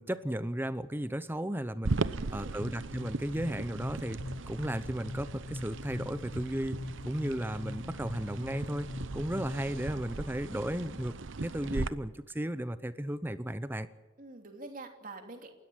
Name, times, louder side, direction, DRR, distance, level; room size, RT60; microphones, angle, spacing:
voice 1, 0.0-6.8 7.0-13.9, right 1 dB, 10° right, 13 dB, 0.7 m, -35 dB
sound 1, 1.8-11.9, right 3 dB, 65° right, 0.8 m, -38 dB
voice 2, 2.0-2.7 14.2-15.5, right 2 dB, 40° right, 4 dB, 3.1 m, -47 dB
sound 2, 2.6-10.2, left 2 dB, 25° left, 0.6 m, -43 dB
29.0 x 13.5 x 8.8 m, 1.1 s
head